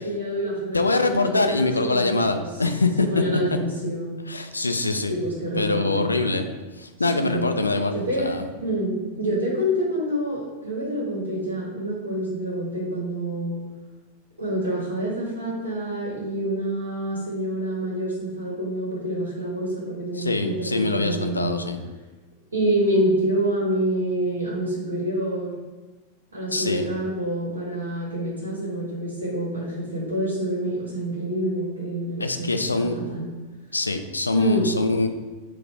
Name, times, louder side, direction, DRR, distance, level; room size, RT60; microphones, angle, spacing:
voice 1, 0.0-2.4 3.0-4.1 5.1-6.1 7.2-7.5 7.9-8.3 8.6-13.6 14.4-21.6 22.5-25.5 26.3-33.3 34.3-34.7, right 1 dB, 70° right, -5 dB, 1.2 m, -27 dB
voice 2, 0.7-3.1 4.3-5.1 5.5-6.5 6.8-8.4 20.2-21.8 26.5-26.9 32.2-33.0 33.7-35.1, left 3 dB, 80° left, 7 dB, 0.3 m, -24 dB
4.0 x 2.5 x 4.6 m, 1.2 s
figure-of-eight pair, 90°, 0 cm